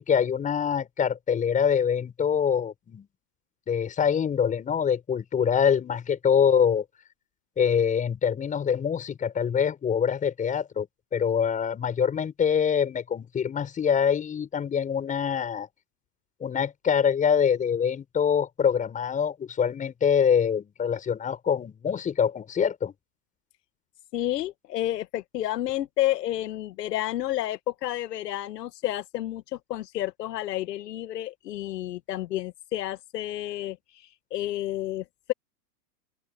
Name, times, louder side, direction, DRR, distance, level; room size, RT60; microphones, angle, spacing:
voice 1, 0.0-3.1 3.7-6.8 7.6-10.9 11.1-15.7 16.4-22.9, left 7 dB, 15° left, 7.0 m, -24 dB
voice 2, 24.1-35.3, left 14 dB, 75° left, 1.9 m, -30 dB
open air
supercardioid pair, 160°, 49 cm